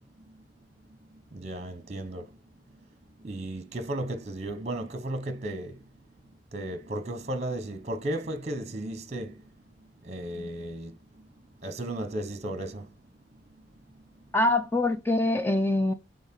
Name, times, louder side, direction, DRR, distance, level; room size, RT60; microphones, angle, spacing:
voice 1, 1.0-2.4 3.2-5.9 6.2-9.5 10.0-11.3 11.6-12.9 13.9-14.0, right 1 dB, 35° right, 1.1 m, -35 dB
voice 2, 14.3-15.9, left 2 dB, 10° left, 0.4 m, -24 dB
9.1 x 3.9 x 4.5 m
head